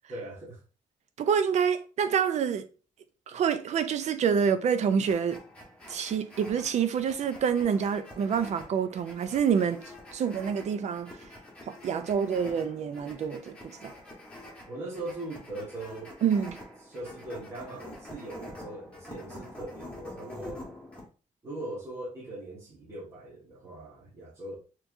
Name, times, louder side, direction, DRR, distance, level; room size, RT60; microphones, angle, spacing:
voice 1, 0.1-0.6 3.3-3.4 14.7-16.2 16.9-20.7 21.4-24.6, right 2 dB, 20° right, 1.5 m, -40 dB
voice 2, 1.2-2.7 3.3-5.4 5.9-9.8 10.1-11.1 11.7-13.9 16.2-16.6, right 7 dB, 60° right, 0.5 m, -27 dB
sound 1, 5.0-21.1, left 1 dB, 10° left, 1.3 m, -47 dB
4.5 x 3.1 x 2.6 m
wide cardioid pair, 160°, 13 cm